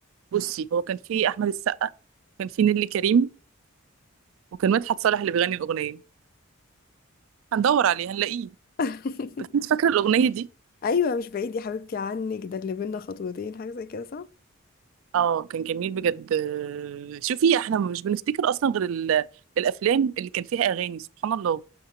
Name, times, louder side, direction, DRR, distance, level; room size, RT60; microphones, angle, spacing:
voice 1, 0.3-1.9 2.4-3.3 4.6-6.0 7.5-8.5 9.5-10.5 15.1-19.3 19.6-21.6, right 8 dB, 70° right, 0.3 m, -24 dB
voice 2, 8.8-9.5 10.8-14.3, left 5 dB, 45° left, 0.3 m, -29 dB
6.6 x 6.3 x 2.9 m
head